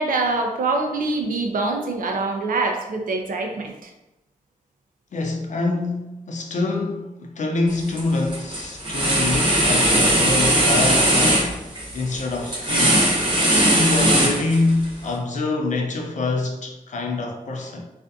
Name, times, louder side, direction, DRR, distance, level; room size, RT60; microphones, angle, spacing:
voice 1, 0.0-3.9, right 3 dB, 70° right, 0.4 m, -24 dB
voice 2, 5.1-11.5 11.9-13.2 13.7-17.8, left 2 dB, 55° left, 0.4 m, -25 dB
sound 1, 7.7-8.0 8.3-14.8, right 1 dB, 35° right, 0.7 m, -19 dB
2.5 x 2.5 x 2.3 m
wide cardioid pair, 145°, 15 cm